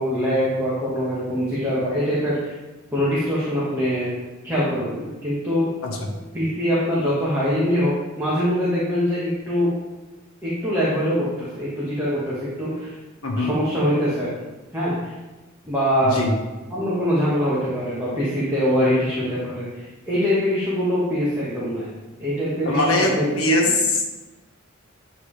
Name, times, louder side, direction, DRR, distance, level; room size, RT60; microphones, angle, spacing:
voice 1, 0.0-2.5 2.9-4.1 4.4-5.7 6.3-9.7 10.4-12.9 13.4-14.3 14.7-15.1 15.6-16.2 16.7-21.9 22.2-23.3 23.6-23.7, equal, 10° right, -10 dB, 1.4 m, -23 dB
voice 2, 16.0-16.3 22.6-24.0, left 2 dB, 80° left, -1 dB, 1.4 m, -21 dB
9.4 x 3.7 x 3.3 m, 1.1 s
head